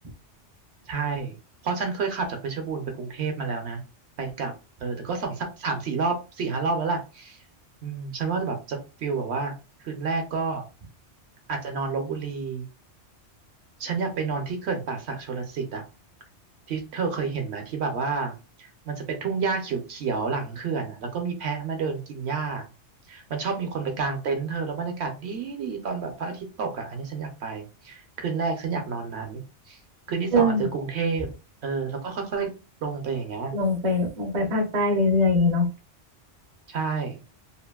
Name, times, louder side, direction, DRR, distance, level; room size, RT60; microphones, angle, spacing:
voice 1, 0.9-1.4 1.6-3.8 4.2-4.5 4.8-7.4 7.8-9.5 9.8-10.6 11.5-12.6 13.8-15.8 16.7-22.7 23.1-29.4 29.7-29.8 30.1-31.3 31.6-32.5 32.8-33.5 36.7-37.2, right 4 dB, 70° right, 4 dB, 0.9 m, -29 dB
voice 2, 30.3-30.7 33.5-35.7, left 1 dB, 40° right, 2 dB, 0.6 m, -22 dB
2.8 x 2.5 x 2.2 m, 0.32 s
omnidirectional pair, 1.2 m